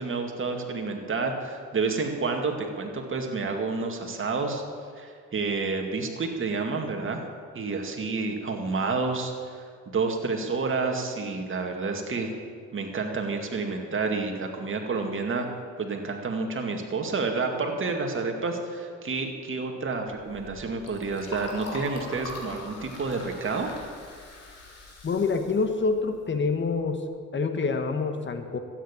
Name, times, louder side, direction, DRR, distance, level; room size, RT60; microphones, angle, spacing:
voice 1, 0.0-4.6 5.0-7.2 7.5-12.3 12.7-15.5 15.8-23.7, right 4 dB, 45° right, 3 dB, 2.2 m, -29 dB
Liquid, 20.0-26.7, left 2 dB, 55° left, 3.7 m, -42 dB
voice 2, 25.0-27.0 27.3-28.6, left 4 dB, 40° left, 7 dB, 1.4 m, -26 dB
13.0 x 9.3 x 8.7 m, 2.1 s
cardioid pair, 90°, 30 cm